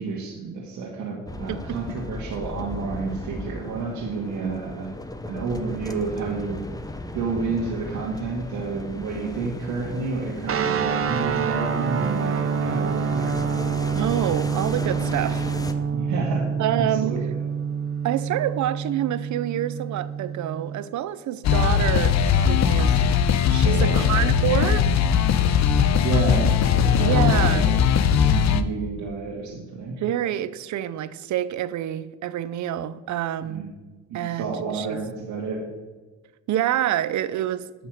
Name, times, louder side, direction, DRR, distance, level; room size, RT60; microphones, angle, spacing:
voice 1, 0.0-4.9 5.2-6.6 7.1-13.3 15.9-17.4 23.6-24.1 26.0-27.7 28.1-30.0 33.4-33.7 34.1-35.6, right 4 dB, 85° right, -3 dB, 1.9 m, -30 dB
sound 1, 1.3-15.7, left 2 dB, 10° left, 0.9 m, -36 dB
sound 2, 10.5-20.8, right 6 dB, 45° right, 1.1 m, -27 dB
voice 2, 14.0-15.5 16.6-17.2 18.0-23.0 23.5-24.9 27.0-27.7 29.9-33.7 34.1-35.0 36.5-37.7, right 12 dB, 70° right, 15 dB, 0.7 m, -27 dB
sound 3, 21.4-28.6, left 7 dB, 65° left, 0.7 m, -19 dB
9.3 x 6.1 x 7.6 m, 1.2 s
cardioid pair, 90°, 30 cm